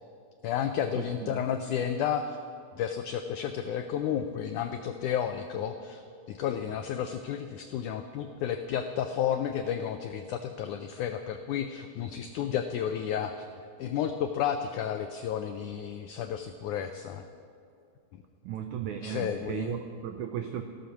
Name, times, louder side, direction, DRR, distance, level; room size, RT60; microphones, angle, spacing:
voice 1, 0.4-2.4 2.7-13.5 13.8-17.2 19.0-19.7, left 9 dB, 85° left, 7 dB, 1.7 m, -32 dB
voice 2, 1.0-1.4 18.4-20.6, right 9 dB, 85° right, 6 dB, 1.7 m, -35 dB
15.0 x 13.0 x 7.1 m, 2.4 s
omnidirectional pair, 4.3 m